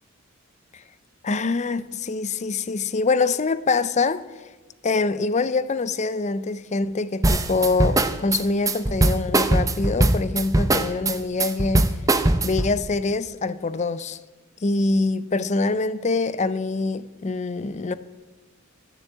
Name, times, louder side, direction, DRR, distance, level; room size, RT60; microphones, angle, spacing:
voice 1, 1.2-4.2 4.8-11.9 12.4-14.2 14.6-17.9, left 3 dB, 35° left, 0.5 m, -24 dB
sound 1, 7.2-12.7, right 2 dB, 15° right, 0.6 m, -20 dB
13.5 x 7.0 x 8.2 m
head